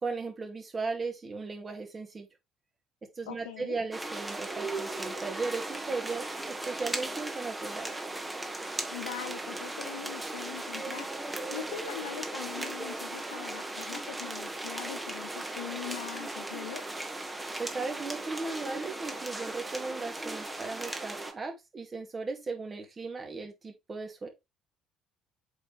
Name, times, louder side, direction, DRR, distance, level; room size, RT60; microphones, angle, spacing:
voice 1, 0.0-2.3 3.2-7.9 17.6-24.3, right 4 dB, 30° right, 2.4 m, -37 dB
voice 2, 3.3-3.8 8.9-11.1 11.5-16.8, left 11 dB, 75° left, 0.7 m, -41 dB
sound 1, 3.9-21.3, right 2 dB, 15° right, 1.7 m, -37 dB
8.0 x 4.8 x 3.3 m
figure-of-eight pair, 55°, 0 cm